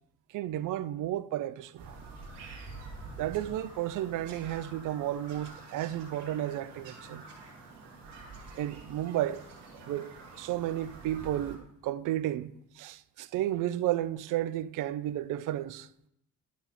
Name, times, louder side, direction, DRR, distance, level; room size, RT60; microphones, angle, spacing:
voice 1, 0.3-2.0 3.2-7.2 8.5-9.4 9.8-15.9, right 13 dB, 45° right, 0.6 m, -33 dB
Bird vocalization bird call bird song, 1.8-11.6, right 3 dB, 65° right, 2.2 m, -47 dB
11.0 x 4.0 x 5.6 m
figure-of-eight pair, 45°, 44 cm